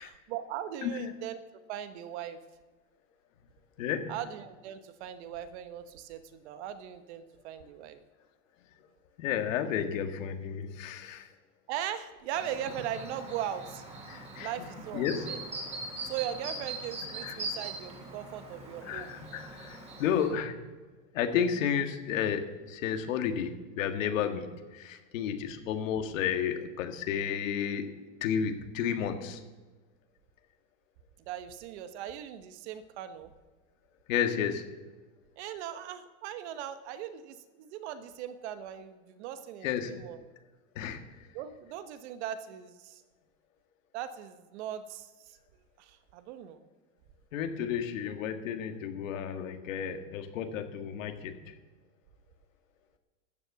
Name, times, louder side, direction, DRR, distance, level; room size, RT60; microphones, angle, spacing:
voice 1, 0.0-1.4 1.7-2.4 4.1-8.0 11.7-13.8 14.4-15.4 16.0-19.1 31.3-33.3 35.4-40.2 41.3-43.0 43.9-45.4 45.8-46.7, right 10 dB, 60° right, 11 dB, 1.2 m, -39 dB
voice 2, 0.8-1.1 3.8-4.1 9.2-11.3 14.1-14.5 14.9-15.3 17.2-17.4 18.9-20.7 21.1-27.9 28.2-29.4 34.1-34.7 39.6-40.0 40.8-41.3 47.3-51.5, left 8 dB, 80° left, 7 dB, 1.8 m, -32 dB
Chirp tweet, 12.3-20.3, right 2 dB, 15° right, 2.7 m, -41 dB
13.0 x 7.6 x 8.1 m, 1.3 s
supercardioid pair, 160°, 38 cm